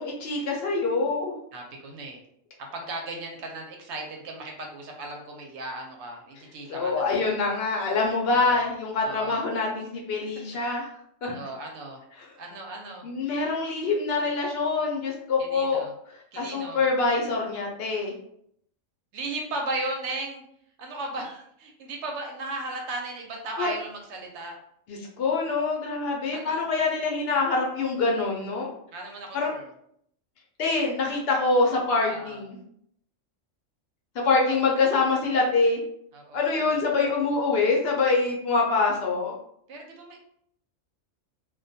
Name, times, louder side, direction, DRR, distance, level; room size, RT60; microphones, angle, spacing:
voice 1, 0.0-1.3 6.7-10.9 11.2-11.4 12.2-12.3 13.0-15.8 16.3-18.1 23.6-23.7 24.9-28.7 29.3-29.5 30.6-32.6 34.2-35.8 36.3-39.3, left 3 dB, 65° left, -1 dB, 0.7 m, -25 dB
voice 2, 1.5-2.2 2.6-7.3 8.3-8.7 9.0-9.5 11.3-12.0 12.4-13.1 15.4-15.9 16.3-16.8 19.1-20.4 20.8-24.6 26.3-26.6 28.9-29.7 32.1-32.4 34.4-34.6 36.1-37.0 39.7-40.2, right 2 dB, 70° right, 1 dB, 0.8 m, -36 dB
2.3 x 2.1 x 2.6 m, 0.71 s
omnidirectional pair, 1.3 m